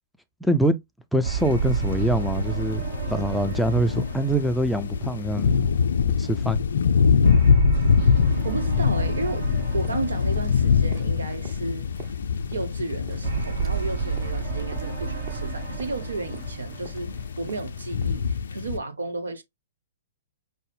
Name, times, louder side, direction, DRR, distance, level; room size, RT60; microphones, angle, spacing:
voice 1, 0.4-0.8 1.1-2.8 3.1-5.7 6.2-6.6, right 1 dB, ahead, 0.4 m, -24 dB
sound 1, 1.2-5.8 7.2-11.6 13.2-17.8, right 6 dB, 60° right, 1.3 m, -31 dB
sound 2, 1.4-18.8, left 6 dB, 70° left, 0.4 m, -25 dB
voice 2, 8.4-9.5 9.7-11.9 12.5-17.1 17.4-19.4, right 3 dB, 80° right, 0.8 m, -33 dB
sound 3, 9.4-18.4, right 7 dB, 40° right, 0.9 m, -48 dB
5.3 x 2.0 x 3.2 m
figure-of-eight pair, 115°, 0 cm